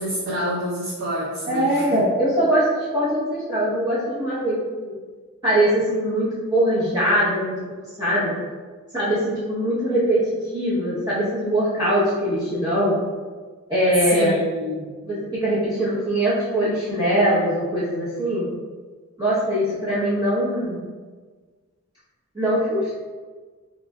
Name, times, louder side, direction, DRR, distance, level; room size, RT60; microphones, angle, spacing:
voice 1, 0.0-2.1 14.1-14.9, equal, 60° right, -8 dB, 0.7 m, -27 dB
voice 2, 1.5-4.9 5.4-7.5 8.0-8.3 8.9-10.2 10.5-13.0 13.7-14.4 15.0-15.1 15.4-18.5 19.2-20.8 22.3-22.9, equal, 20° right, -13 dB, 0.8 m, -22 dB
3.0 x 2.3 x 3.4 m, 1.4 s
head